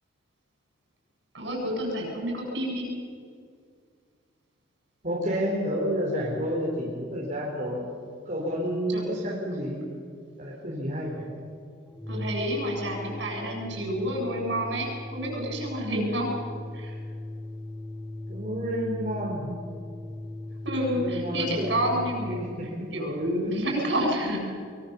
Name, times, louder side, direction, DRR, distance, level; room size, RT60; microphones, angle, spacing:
voice 1, 1.3-2.9 8.9-9.0 12.1-16.3 16.7-16.9 20.6-22.5 22.9-24.4, equal, 70° right, -1 dB, 7.9 m, -29 dB
voice 2, 5.0-7.9 8.2-9.8 10.4-11.3 18.3-19.5 20.9-21.8 22.4-22.9 23.2-23.5, equal, 45° right, -4 dB, 4.3 m, -30 dB
Organ, 11.9-22.3, left 1 dB, 10° left, 1.7 m, -38 dB
23.5 x 23.5 x 7.2 m, 2.2 s
head